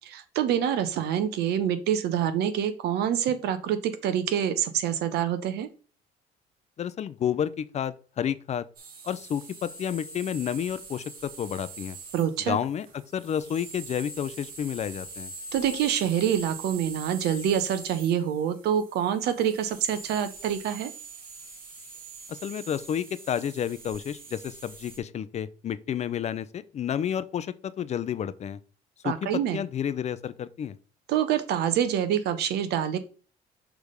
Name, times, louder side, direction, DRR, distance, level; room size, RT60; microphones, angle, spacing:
voice 1, 0.0-5.7 12.1-12.6 15.5-20.9 29.0-29.6 31.1-33.0, right 9 dB, 80° right, 1.0 m, -26 dB
voice 2, 6.8-8.7 9.0-12.0 12.5-12.9 13.1-15.3 22.3-28.6 29.0-30.8, left 9 dB, 40° left, 0.5 m, -30 dB
sound 1, 8.8-25.0, right 3 dB, 60° right, 2.0 m, -44 dB
6.4 x 3.4 x 5.1 m
cardioid pair, 110°, 17 cm